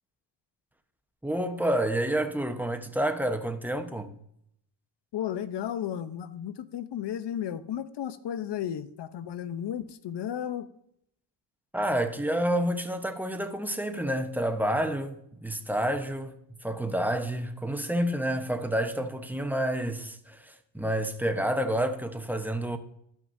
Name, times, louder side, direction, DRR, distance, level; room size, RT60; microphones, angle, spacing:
voice 1, 1.2-4.2 11.7-16.3 16.6-22.8, right 1 dB, 5° right, 1.0 m, -29 dB
voice 2, 5.1-10.7, left 10 dB, 55° left, 0.8 m, -34 dB
13.0 x 6.0 x 2.7 m
cardioid pair, 75°, 48 cm